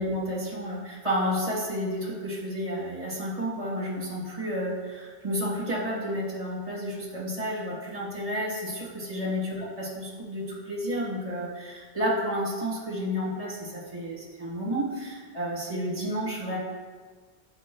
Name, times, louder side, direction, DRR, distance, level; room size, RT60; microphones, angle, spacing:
voice 1, 0.0-16.6, equal, 35° right, -5 dB, 1.5 m, -31 dB
8.3 x 5.2 x 2.2 m, 1.5 s
omnidirectional pair, 1.1 m